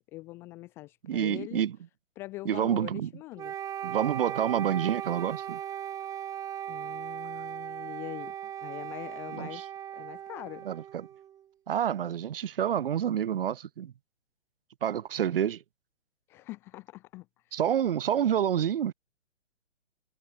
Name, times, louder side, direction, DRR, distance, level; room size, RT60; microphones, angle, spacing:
voice 1, 0.1-1.6 2.2-3.5 6.7-8.3 8.6-9.6 9.9-10.6 16.3-17.6, left 19 dB, 5° left, 0.4 m, -43 dB
voice 2, 1.1-1.8 2.4-3.1 3.8-5.6 9.3-9.6 10.7-11.1 11.7-13.9 14.8-15.6 17.5-18.9, right 9 dB, 50° right, 2.6 m, -28 dB
Wind instrument woodwind instrument, 3.4-11.4, right 10 dB, 10° right, 0.8 m, -38 dB
figure-of-eight pair, 130°, 36 cm